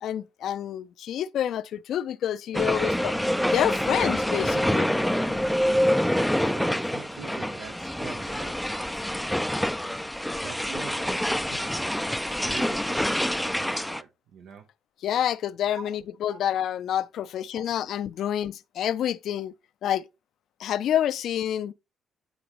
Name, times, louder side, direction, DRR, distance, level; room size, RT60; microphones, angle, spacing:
voice 1, 0.0-3.2 3.5-4.9 5.3-5.4 15.0-19.5 19.8-20.0 20.6-21.7, left 10 dB, 75° left, 0.4 m, -28 dB
sound 1, 2.5-14.0, equal, ahead, 0.3 m, -26 dB
voice 2, 6.4-8.6 10.3-12.0 12.4-14.7 15.7-16.0 16.3-16.4 17.5-17.6, right 7 dB, 75° right, 0.7 m, -44 dB
9.4 x 3.9 x 3.0 m
cardioid pair, 90°, 0 cm